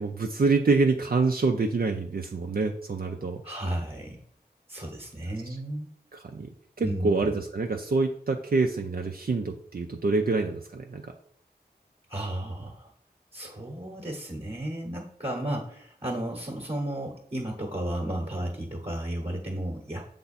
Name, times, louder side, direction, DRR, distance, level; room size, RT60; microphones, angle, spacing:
voice 1, 0.0-3.4 5.5-5.6 6.1-11.1, right 3 dB, 60° right, 3 dB, 0.5 m, -26 dB
voice 2, 3.4-4.2 4.7-5.9 6.8-7.3 12.1-12.9 13.3-20.0, right 1 dB, 35° right, 0 dB, 1.1 m, -33 dB
6.8 x 3.4 x 4.1 m, 0.64 s
wide cardioid pair, 65°, 18 cm